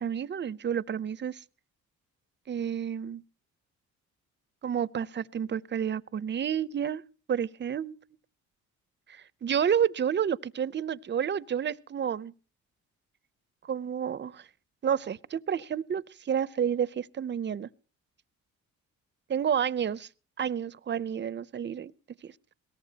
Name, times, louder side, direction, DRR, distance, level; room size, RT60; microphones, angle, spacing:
voice 1, 0.0-1.4 2.5-3.2 4.6-7.0 7.3-7.9 9.1-12.3 13.6-14.4 14.8-17.7 19.3-20.1 20.4-21.9 22.2-22.3, right 8 dB, 35° right, 0.7 m, -30 dB
22.0 x 18.0 x 2.9 m
cardioid pair, 90°, 30 cm